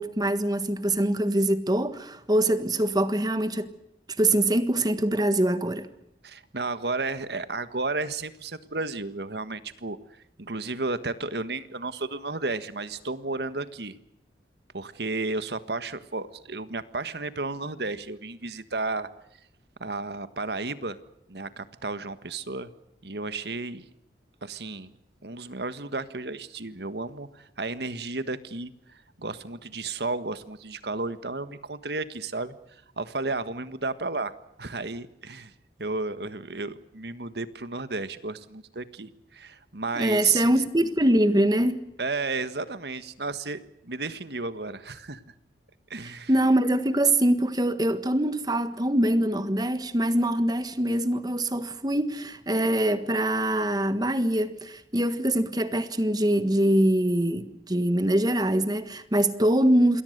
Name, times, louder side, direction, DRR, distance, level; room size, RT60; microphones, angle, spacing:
voice 1, 0.0-3.7 4.2-5.9 39.9-41.9 46.0-60.0, right 1 dB, 20° right, 1.5 m, -24 dB
voice 2, 6.2-10.0 10.4-14.0 14.7-19.1 19.8-21.0 21.3-22.7 23.0-23.9 24.4-24.9 25.2-35.5 35.8-40.5 42.0-45.2 45.9-46.3, right 3 dB, 65° right, 1.6 m, -33 dB
28.0 x 22.0 x 6.7 m
head